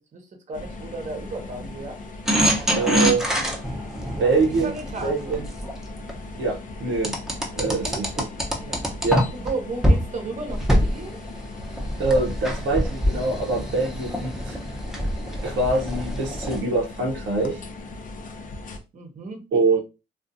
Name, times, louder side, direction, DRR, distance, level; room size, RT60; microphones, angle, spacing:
sound 1, 0.5-18.8, left 3 dB, 40° left, 0.6 m, -39 dB
voice 1, 0.5-2.0 2.5-3.0 4.2-4.3 4.6-5.4 7.8-8.0 8.6-8.8 9.3-11.2 18.9-19.4, right 3 dB, 35° right, 4 dB, 0.9 m, -34 dB
sound 2, 2.3-6.2 7.0-9.5 9.8-10.0 10.5-16.6, equal, ahead, 0.7 m, -25 dB
voice 2, 2.7-3.2 4.2-4.7 5.0-5.5 6.4-7.2 7.5-8.3 9.0-9.3 12.0-14.6 15.4-17.6 19.5-19.8, right 3 dB, 70° right, 0 dB, 0.7 m, -24 dB
2.5 x 2.4 x 2.5 m, 0.28 s
cardioid pair, 90°, 20 cm